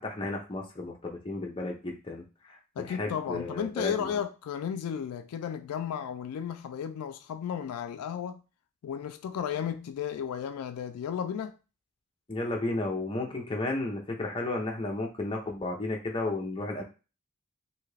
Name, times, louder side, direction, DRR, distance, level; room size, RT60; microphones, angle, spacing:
voice 1, 0.0-4.2 12.3-16.8, left 2 dB, 25° left, 0.6 m, -33 dB
voice 2, 2.8-8.4 8.8-11.6, left 8 dB, 85° left, 0.3 m, -34 dB
2.7 x 2.4 x 3.2 m
head